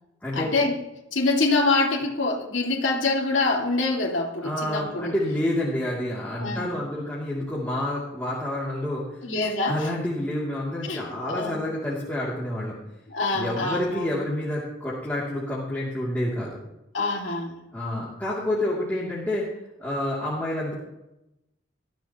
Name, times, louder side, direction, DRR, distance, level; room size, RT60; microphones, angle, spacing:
voice 1, 0.3-0.8 1.1-5.1 6.4-6.7 9.2-9.9 10.8-11.6 13.1-14.0 16.9-17.6, left 3 dB, 75° left, -2 dB, 2.4 m, -25 dB
voice 2, 4.4-9.2 9.7-12.8 13.3-16.6 17.7-19.5 19.8-20.7, left 1 dB, 10° left, -8 dB, 2.8 m, -28 dB
21.0 x 13.5 x 3.0 m, 0.91 s
head